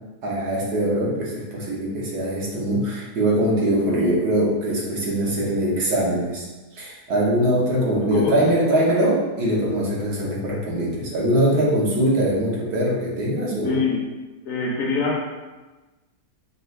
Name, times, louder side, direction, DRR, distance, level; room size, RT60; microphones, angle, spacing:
voice 1, 0.2-6.5 6.7-13.8, right 1 dB, 80° right, -5 dB, 1.5 m, -22 dB
voice 2, 13.6-14.0 14.5-15.2, left 4 dB, 65° left, -1 dB, 1.0 m, -24 dB
5.3 x 2.3 x 3.2 m, 1.2 s
omnidirectional pair, 1.7 m